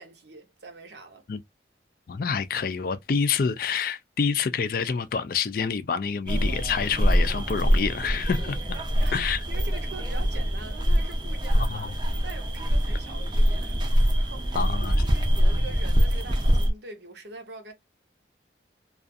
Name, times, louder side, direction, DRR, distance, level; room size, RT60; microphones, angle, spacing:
voice 1, 0.0-1.2 8.9-11.9 12.2-17.7, right 3 dB, 70° right, 0.8 m, -44 dB
voice 2, 2.1-8.8 9.1-9.4 11.7-11.9 14.6-15.0, left 6 dB, 55° left, 0.4 m, -27 dB
sound 1, 6.3-16.7, equal, 25° right, 0.5 m, -24 dB
2.4 x 2.4 x 2.5 m
head